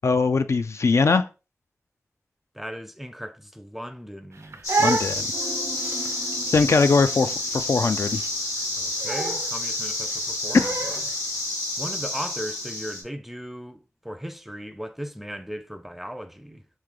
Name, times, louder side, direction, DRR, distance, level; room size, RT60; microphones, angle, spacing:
voice 1, 0.0-1.3 4.8-5.3 6.5-8.2, left 4 dB, 65° left, 0.3 m, -21 dB
voice 2, 2.5-4.8 8.8-11.0 11.8-16.7, equal, 5° right, 0.5 m, -37 dB
Crying sobbing, 4.3-11.2, right 3 dB, 65° right, 0.5 m, -31 dB
sound 1, 4.6-13.0, left 2 dB, 80° left, 1.3 m, -29 dB
sound 2, 5.3-8.6 8.9-9.0, right 2 dB, 90° right, 0.8 m, -42 dB
3.2 x 2.8 x 3.7 m
cardioid pair, 50°, 5 cm